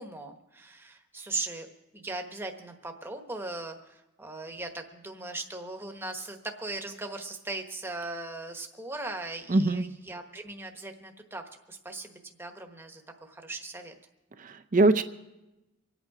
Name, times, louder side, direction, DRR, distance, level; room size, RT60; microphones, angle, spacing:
voice 1, 0.0-1.7 1.9-11.4 11.7-12.1 12.4-13.9, right 2 dB, 10° right, 4 dB, 1.1 m, -39 dB
voice 2, 9.5-9.8 14.4-15.0, right 2 dB, 35° right, 8 dB, 0.5 m, -22 dB
25.0 x 9.0 x 4.8 m, 0.98 s
head